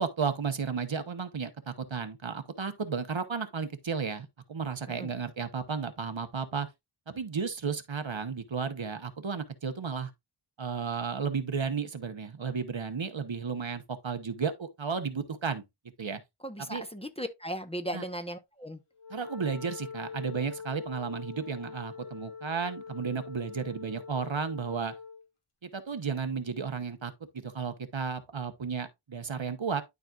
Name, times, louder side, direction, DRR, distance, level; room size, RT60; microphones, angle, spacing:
voice 1, 0.0-6.7 7.1-10.1 10.6-15.6 16.0-16.2 16.6-16.8 17.9-18.0 19.1-24.9 25.6-29.8, right 5 dB, 65° right, 1.1 m, -33 dB
voice 2, 16.4-18.8, equal, 10° left, 1.0 m, -37 dB
Wind instrument woodwind instrument, 19.0-25.3, left 6 dB, 80° left, 1.9 m, -44 dB
12.0 x 4.1 x 2.4 m
wide cardioid pair, 40°, 50 cm